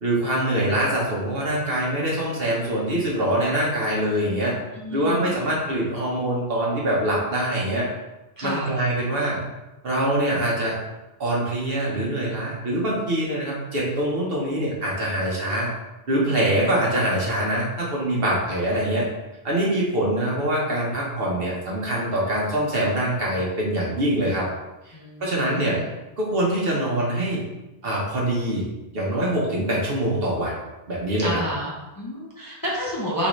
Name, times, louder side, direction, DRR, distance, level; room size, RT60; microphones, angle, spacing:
voice 1, 0.0-4.5 4.9-7.9 8.4-9.4 9.8-10.8 11.2-15.7 16.1-19.1 19.4-24.5 25.2-25.8 26.2-27.4 27.8-28.6 28.9-30.5 30.9-31.4, right 1 dB, 60° right, -4 dB, 1.3 m, -24 dB
voice 2, 4.7-5.5 8.4-8.7 24.9-25.9 31.2-33.3, equal, 25° left, -5 dB, 0.6 m, -30 dB
4.1 x 3.8 x 3.1 m, 1.0 s
omnidirectional pair, 1.2 m